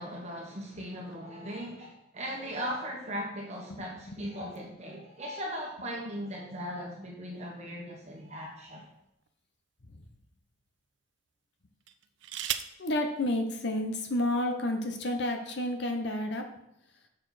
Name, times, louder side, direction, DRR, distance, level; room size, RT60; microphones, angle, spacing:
voice 1, 0.0-8.9, equal, 35° right, -2 dB, 1.3 m, -38 dB
voice 2, 3.7-4.3 9.9-10.0 12.8-16.5, left 1 dB, 55° left, 5 dB, 0.8 m, -31 dB
sound 1, 8.1-9.3 10.0-10.2 11.8-12.9 14.0-14.1 14.4-14.8, right 11 dB, 65° right, 0.4 m, -38 dB
6.8 x 6.5 x 4.1 m, 0.82 s
head